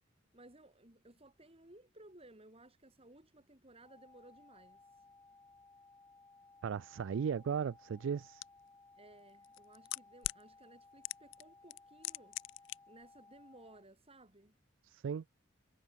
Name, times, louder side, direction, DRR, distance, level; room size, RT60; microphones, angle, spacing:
voice 1, 0.3-5.0 9.0-12.4 12.9-14.6, right 1 dB, 30° right, 5.8 m, -59 dB
sound 1, 3.8-13.8, left 3 dB, 15° left, 1.8 m, -62 dB
voice 2, 6.6-8.4 14.8-15.2, right 7 dB, 70° right, 0.3 m, -36 dB
sound 2, 8.4-8.5 9.4-10.4 11.0-11.4 11.7-12.8 13.0-13.1, left 19 dB, 65° left, 0.3 m, -39 dB
head